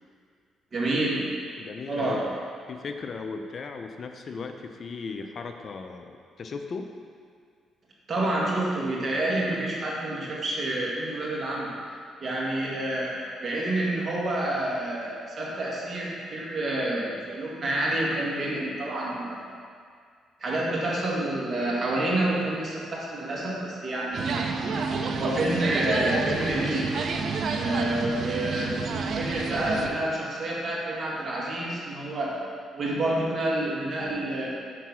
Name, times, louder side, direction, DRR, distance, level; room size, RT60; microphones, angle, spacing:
voice 1, 0.7-1.2 1.9-2.2 8.1-19.5 20.4-24.5 25.1-26.9 27.5-28.8 29.2-32.4 32.7-34.5, right 1 dB, 40° right, -5 dB, 1.9 m, -28 dB
voice 2, 1.6-2.3 2.7-6.9, left 4 dB, 50° left, 6 dB, 0.5 m, -37 dB
sound 1, 24.1-29.9, right 4 dB, 60° right, 0.6 m, -29 dB
6.0 x 4.6 x 6.0 m, 2.1 s
cardioid pair, 90°, 0 cm